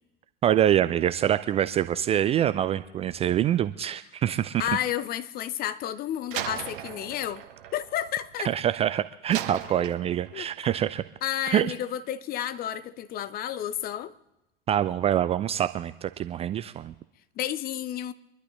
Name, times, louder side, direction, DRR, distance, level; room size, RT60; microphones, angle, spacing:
voice 1, 0.4-4.6 8.4-11.0 11.5-11.7 14.7-16.9, right 11 dB, 20° right, 0.4 m, -25 dB
voice 2, 4.6-7.4 7.7-8.5 10.3-10.5 11.2-14.1 17.4-18.1, left 11 dB, 30° left, 0.7 m, -31 dB
Slam, 6.3-8.7 9.3-10.5, right 11 dB, 60° right, 1.2 m, -37 dB
26.0 x 11.5 x 3.2 m
figure-of-eight pair, 80°, 30 cm